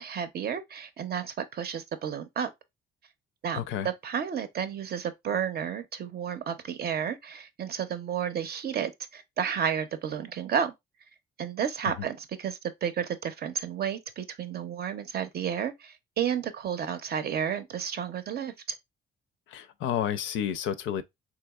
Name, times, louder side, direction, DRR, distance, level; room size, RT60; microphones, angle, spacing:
voice 1, 0.0-2.5 3.4-10.7 11.4-18.8, right 8 dB, 50° right, 0.6 m, -32 dB
voice 2, 3.6-3.9 19.5-21.0, left 9 dB, 80° left, 0.5 m, -30 dB
3.6 x 2.9 x 2.3 m
cardioid pair, 90°, 20 cm